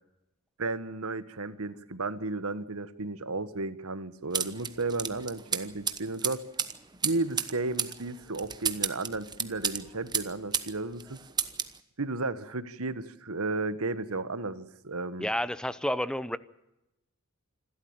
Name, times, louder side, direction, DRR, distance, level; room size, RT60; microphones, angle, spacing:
voice 1, 0.6-6.5 7.0-11.2 12.0-15.3, right 3 dB, 75° right, 13 dB, 1.4 m, -33 dB
sound 1, 4.3-10.7 11.0-11.8, right 7 dB, 20° right, 1.0 m, -32 dB
voice 2, 15.2-16.4, left 1 dB, 5° left, 15 dB, 0.7 m, -30 dB
27.0 x 13.0 x 8.9 m, 0.90 s
head